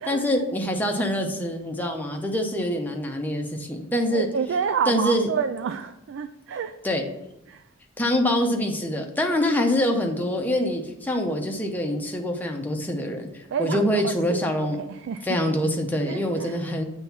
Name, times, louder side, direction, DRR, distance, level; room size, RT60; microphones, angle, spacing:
voice 1, 0.1-4.3 4.9-5.3 6.8-7.0 8.0-14.8 15.2-16.8, left 1 dB, 10° left, 2 dB, 0.7 m, -25 dB
voice 2, 4.1-6.7 7.5-7.6 13.5-14.4 14.9-15.4 16.0-16.6, right 6 dB, 60° right, 9 dB, 0.3 m, -29 dB
7.5 x 3.5 x 5.7 m, 0.87 s
head